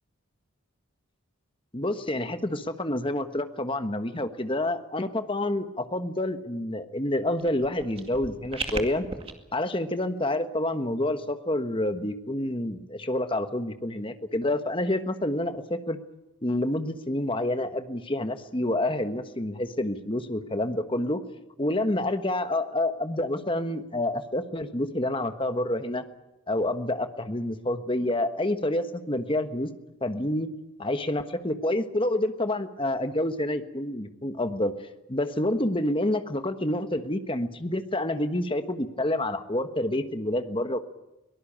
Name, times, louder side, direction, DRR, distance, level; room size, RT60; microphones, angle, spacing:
voice 1, 1.7-9.0 9.5-16.0 16.4-21.2 21.6-26.0 26.5-29.7 30.0-30.5 30.8-34.7 35.1-40.8, left 1 dB, 25° left, 9 dB, 1.3 m, -28 dB
sound 1, 7.4-9.3, right 3 dB, 25° right, 2.2 m, -36 dB
23.0 x 18.5 x 8.8 m, 0.98 s
head